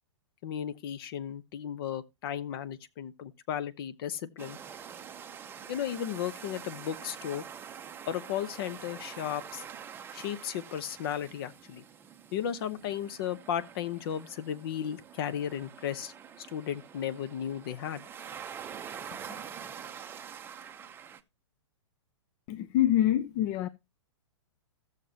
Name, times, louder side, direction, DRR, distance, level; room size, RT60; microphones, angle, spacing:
voice 1, 0.4-4.6 5.7-7.4 8.1-9.6 10.1-11.8 12.3-18.0, left 9 dB, 50° left, 0.9 m, -35 dB
sound 1, 4.4-21.2, right 8 dB, 15° right, 0.6 m, -46 dB
voice 2, 22.5-23.7, left 12 dB, 35° left, 0.5 m, -25 dB
15.5 x 6.7 x 2.8 m
hypercardioid pair, 135°, 15 cm